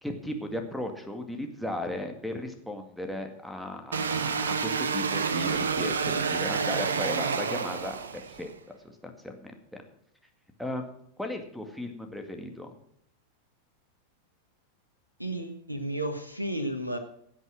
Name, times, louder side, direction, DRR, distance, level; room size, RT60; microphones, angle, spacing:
voice 1, 0.0-8.0 8.4-8.5 8.8-9.5 10.6-10.9 11.2-12.7, left 1 dB, ahead, 3 dB, 2.0 m, -36 dB
sound 1, 3.9-8.5, right 5 dB, 70° right, 1.0 m, -29 dB
voice 2, 15.2-17.0, right 1 dB, 85° right, 7 dB, 1.3 m, -32 dB
16.5 x 8.2 x 6.3 m, 0.68 s
figure-of-eight pair, 90°, 0 cm